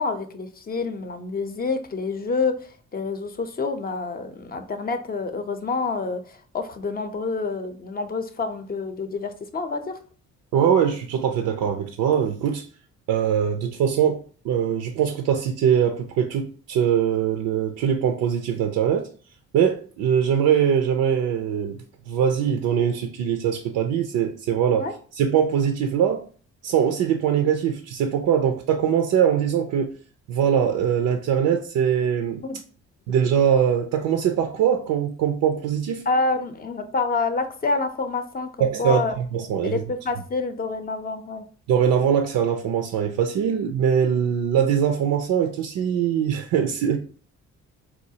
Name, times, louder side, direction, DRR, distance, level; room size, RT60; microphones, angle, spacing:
voice 1, 0.0-9.9 24.8-24.9 32.4-32.6 36.1-39.1 39.6-41.5, left 3 dB, 30° left, 0.6 m, -27 dB
voice 2, 10.5-12.7 13.1-19.1 19.5-21.8 22.1-24.9 25.1-26.2 26.6-29.9 30.3-32.5 33.1-36.0 38.6-39.8 41.7-47.0, right 8 dB, 80° right, 0.5 m, -22 dB
4.2 x 2.3 x 2.7 m
cardioid pair, 90°, 30 cm